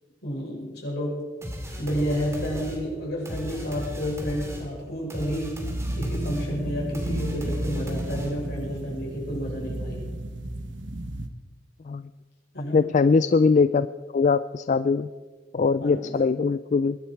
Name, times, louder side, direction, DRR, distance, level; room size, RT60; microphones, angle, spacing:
voice 1, 0.2-1.2 1.8-5.6 5.9-10.0 12.5-12.9 15.8-16.2, equal, 60° left, -3 dB, 6.4 m, -30 dB
sound 1, 1.4-8.6, equal, 15° right, 2.5 m, -36 dB
sound 2, 5.6-11.3, right 1 dB, 70° right, 1.4 m, -33 dB
voice 2, 12.7-13.9 14.1-15.1 15.5-17.0, left 4 dB, 40° left, 14 dB, 0.3 m, -21 dB
22.0 x 11.5 x 4.6 m, 1.3 s
head